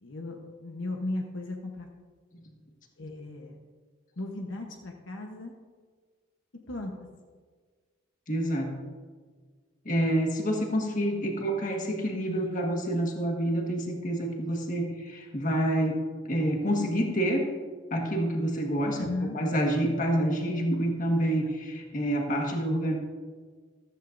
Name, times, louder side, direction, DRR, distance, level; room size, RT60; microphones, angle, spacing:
voice 1, 0.0-1.9 3.0-3.6 4.2-5.5 6.7-7.1 19.0-19.4, left 2 dB, 70° left, 2 dB, 1.0 m, -36 dB
voice 2, 8.3-8.8 9.9-17.5 17.9-23.0, right 1 dB, 40° left, 1 dB, 1.6 m, -28 dB
14.0 x 13.5 x 2.6 m, 1.5 s
head